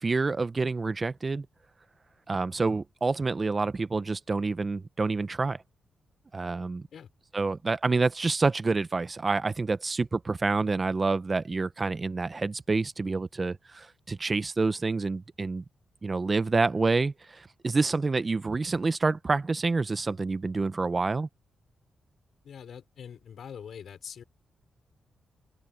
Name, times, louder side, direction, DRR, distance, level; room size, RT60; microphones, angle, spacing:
voice 1, 0.0-1.5 2.3-5.6 6.3-6.9 7.3-15.6 16.0-21.3, right 3 dB, 35° right, 0.9 m, -28 dB
voice 2, 22.4-24.2, left 8 dB, 70° left, 5.4 m, -43 dB
open air
cardioid pair, 70°, 0 cm